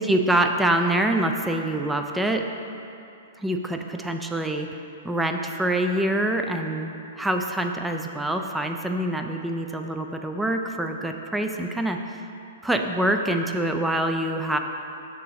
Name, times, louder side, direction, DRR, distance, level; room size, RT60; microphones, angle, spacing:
voice 1, 0.0-2.5 3.4-4.7 5.0-12.0 12.6-14.6, right 1 dB, 5° right, 4 dB, 0.3 m, -25 dB
6.7 x 3.6 x 4.0 m, 2.7 s
figure-of-eight pair, 110°, 0 cm